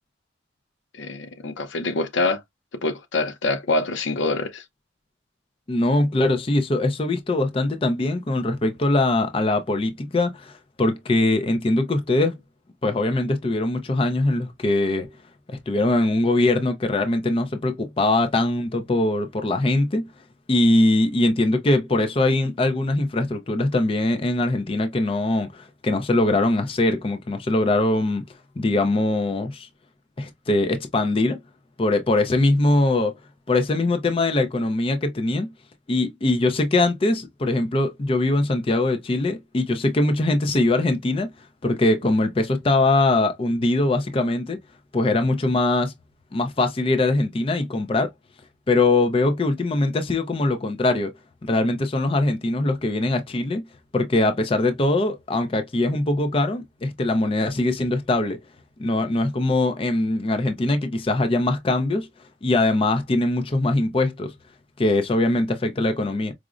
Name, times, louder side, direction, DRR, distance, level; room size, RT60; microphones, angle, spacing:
voice 1, 0.9-2.4 2.8-4.6, left 3 dB, 85° left, 0.6 m, -25 dB
voice 2, 5.7-12.3 12.8-15.2 15.5-20.1 20.5-28.2 28.6-29.7 30.2-31.4 31.8-33.1 33.5-35.5 35.9-41.3 41.6-44.6 44.9-45.9 46.3-48.1 48.7-51.1 51.4-53.6 53.9-58.4 58.8-62.1 62.4-64.3 64.8-66.3, left 2 dB, 30° left, 0.4 m, -22 dB
4.8 x 2.0 x 2.4 m
head